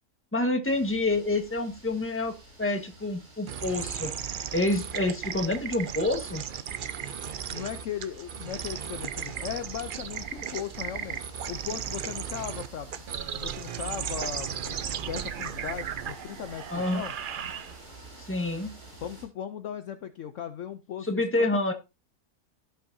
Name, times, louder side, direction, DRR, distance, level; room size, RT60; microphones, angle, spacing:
voice 1, 0.3-2.3 2.6-6.4 16.7-17.0 18.2-18.7 21.0-21.7, left 2 dB, 10° left, 5 dB, 1.3 m, -28 dB
sound 1, 0.6-19.3, right 1 dB, 80° right, 5.0 m, -50 dB
sound 2, 3.5-18.0, right 8 dB, 60° right, 0.5 m, -36 dB
voice 2, 7.5-11.2 11.5-13.0 13.4-14.8 15.1-17.1 19.0-21.6, left 9 dB, 65° left, 9 dB, 0.9 m, -37 dB
16.5 x 5.9 x 2.7 m, 0.27 s
omnidirectional pair, 1.6 m